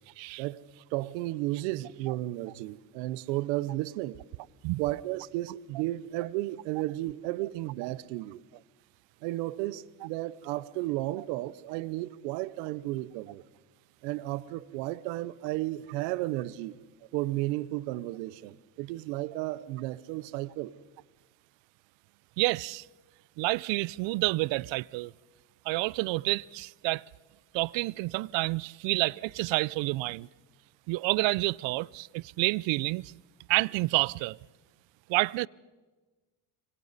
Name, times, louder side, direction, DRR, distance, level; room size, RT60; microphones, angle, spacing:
voice 1, 0.9-4.2 4.8-8.4 9.2-13.4 14.0-16.7 17.1-20.7, right 17 dB, 90° right, 0.9 m, -33 dB
voice 2, 22.4-22.9 23.4-25.1 25.7-27.0 27.5-30.3 30.9-33.1 33.5-34.4 35.1-35.5, right 22 dB, 65° right, 0.6 m, -29 dB
26.0 x 25.0 x 4.1 m
supercardioid pair, 95°, 49 cm